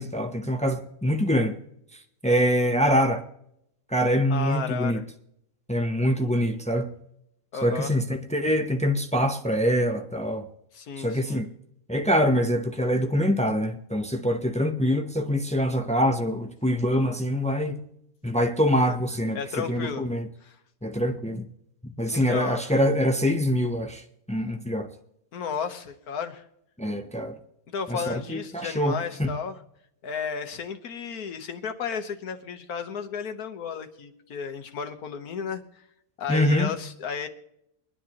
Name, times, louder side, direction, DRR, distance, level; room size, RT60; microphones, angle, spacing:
voice 1, 0.0-1.6 2.2-3.2 3.9-5.0 5.7-6.9 7.6-10.5 11.0-11.5 11.9-17.8 18.2-20.3 20.8-21.5 21.8-24.0 24.3-24.9 26.8-27.4 27.9-29.3 36.3-36.7, equal, 10° left, 0.4 m, -24 dB
voice 2, 4.3-5.0 7.5-7.9 10.7-11.4 18.8-19.0 19.3-20.0 20.4-20.6 22.1-22.8 25.3-26.4 27.7-29.6 30.0-35.8 36.2-37.3, left 6 dB, 80° left, 1.6 m, -33 dB
24.5 x 10.0 x 3.0 m
omnidirectional pair, 1.6 m